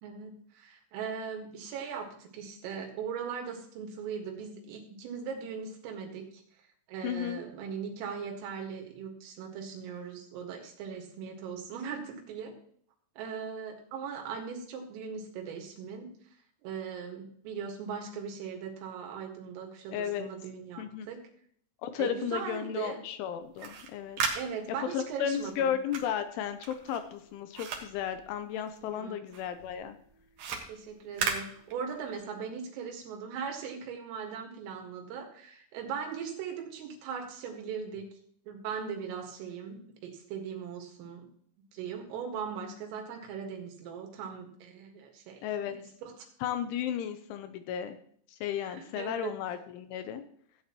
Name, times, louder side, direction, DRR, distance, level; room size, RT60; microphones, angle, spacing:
voice 1, 0.0-6.4 6.9-12.6 13.2-16.1 16.6-21.3 22.0-23.0 24.3-25.8 28.8-29.2 30.7-38.1 38.5-41.3 41.7-46.3 48.6-49.3, right 6 dB, 80° right, 2 dB, 4.3 m, -39 dB
voice 2, 7.0-7.4 19.9-20.3 20.8-21.1 21.8-24.2 24.9-30.0 45.4-45.8 46.4-48.0 48.3-50.2, left 9 dB, 80° left, 9 dB, 2.9 m, -34 dB
sound 1, 23.4-29.0 29.3-32.2, right 5 dB, 65° right, 2.1 m, -37 dB
16.0 x 9.1 x 3.0 m, 0.62 s
omnidirectional pair, 5.8 m